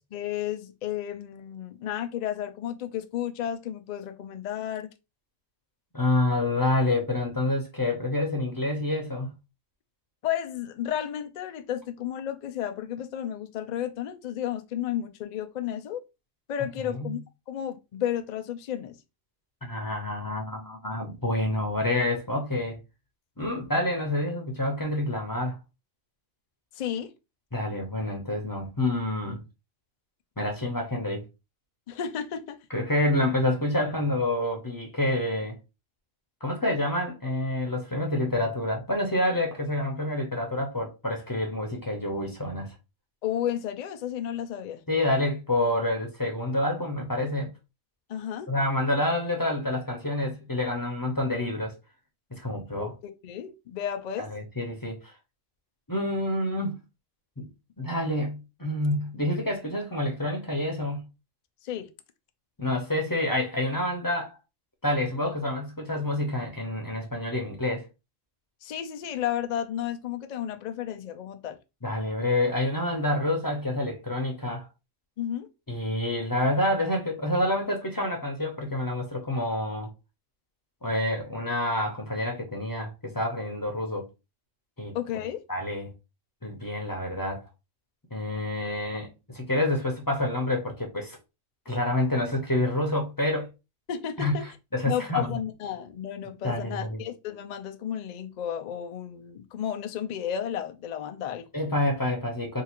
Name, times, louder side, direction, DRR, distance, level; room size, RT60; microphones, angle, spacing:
voice 1, 0.1-4.9 10.2-16.0 16.5-17.2 17.5-19.0 26.8-27.1 31.9-32.6 43.2-44.8 48.1-48.5 52.8-52.9 53.2-54.3 61.6-61.9 68.6-71.6 75.2-75.5 84.9-85.4 93.9-94.4 94.9-101.5, left 10 dB, 90° left, 0.3 m, -32 dB
voice 2, 5.9-9.3 16.8-17.2 19.6-22.8 23.4-25.6 27.5-29.4 30.4-31.2 32.7-35.6 36.4-42.7 44.9-47.5 48.5-51.7 52.3-52.9 54.2-55.1 55.9-56.8 57.4-57.5 57.8-61.1 62.6-64.4 64.8-67.9 71.8-74.7 75.7-79.9 80.8-84.1 84.8-85.0 85.5-85.9 86.4-87.4 88.1-91.2 91.7-93.5 94.2-95.4 96.4-97.0 101.5-102.6, left 1 dB, 20° left, 0.6 m, -28 dB
3.7 x 2.4 x 2.9 m
omnidirectional pair, 1.3 m